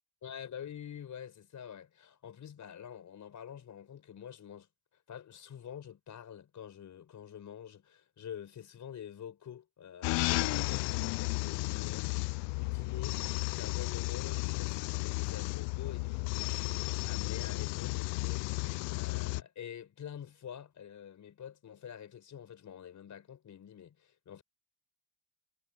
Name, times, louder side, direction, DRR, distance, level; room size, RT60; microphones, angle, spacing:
voice 1, 0.2-4.7 5.1-12.2 12.6-24.4, left 9 dB, 45° left, 5.3 m, -47 dB
sound 1, 10.0-19.4, left 29 dB, 90° left, 0.5 m, -33 dB
cardioid pair, 105°, 40 cm